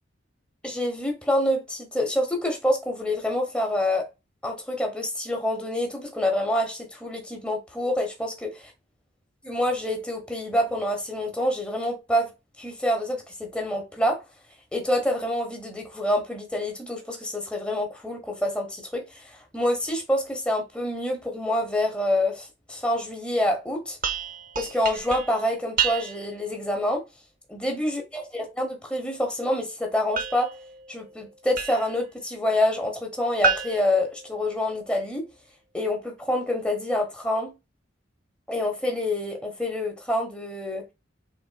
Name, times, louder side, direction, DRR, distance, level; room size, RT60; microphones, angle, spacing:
voice 1, 0.6-4.1 4.4-8.6 9.4-12.3 12.6-14.2 14.7-24.0 24.6-27.0 27.5-30.5 30.9-35.3 35.7-37.5 38.5-40.9, left 1 dB, 5° left, 1.0 m, -27 dB
sound 1, 24.0-26.4 30.2-32.0 33.4-34.9, right 6 dB, 45° right, 0.6 m, -30 dB
5.4 x 3.7 x 2.3 m
head